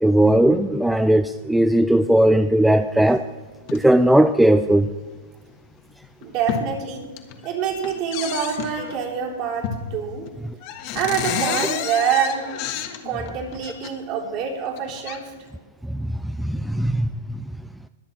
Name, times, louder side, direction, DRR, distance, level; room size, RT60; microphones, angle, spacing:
voice 1, 0.0-3.3 3.7-4.9 15.9-17.5, right 1 dB, 5° right, 11 dB, 0.4 m, -18 dB
sound 1, 3.6-3.8 4.7-4.9 5.5-5.6 6.0-6.7 7.0-7.5 7.8-9.0 9.6-10.0 10.3-10.4 10.6-13.9 14.7-15.2, left 8 dB, 45° left, 1.6 m, -30 dB
voice 2, 6.2-7.1 7.4-10.3 10.9-12.5 13.0-15.3, right 7 dB, 45° right, 0 dB, 3.8 m, -26 dB
22.5 x 7.5 x 4.5 m, 1.3 s
hypercardioid pair, 120°, 0 cm